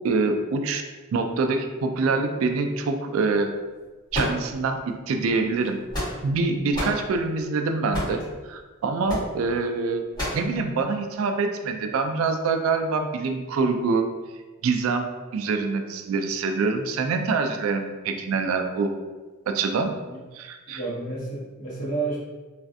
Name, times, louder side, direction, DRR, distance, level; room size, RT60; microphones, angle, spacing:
voice 1, 0.0-0.8 1.1-3.6 4.1-5.8 6.2-10.0 10.3-14.1 14.6-18.9 19.5-19.9 20.3-20.8, right 4 dB, 75° right, 5 dB, 0.3 m, -25 dB
sound 1, 4.1-4.9 5.6-6.4 6.7-7.0 7.9-8.3 9.1-9.3 10.2-10.5, left 1 dB, 20° left, 1.4 m, -29 dB
voice 2, 20.7-22.2, right 3 dB, 40° left, -8 dB, 1.1 m, -30 dB
3.2 x 2.4 x 2.5 m, 1.3 s
head